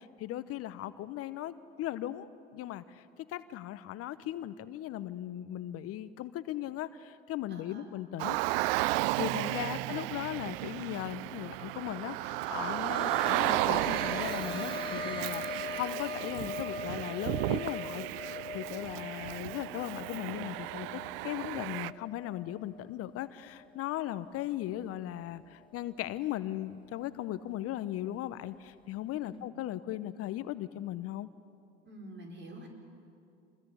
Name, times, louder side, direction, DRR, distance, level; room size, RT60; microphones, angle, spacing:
voice 1, 0.0-8.4 9.2-31.3, left 13 dB, 50° left, 15 dB, 0.9 m, -38 dB
voice 2, 7.5-8.0 29.2-29.4 31.8-32.7, right 1 dB, 35° right, 2 dB, 5.9 m, -48 dB
Car, 8.2-21.9, right 19 dB, 70° right, 0.5 m, -34 dB
sound 1, 12.3-23.8 24.1-24.2 25.7-25.8, left 5 dB, 15° left, 0.6 m, -42 dB
26.0 x 21.5 x 8.3 m, 2.5 s
hypercardioid pair, 70°, 30 cm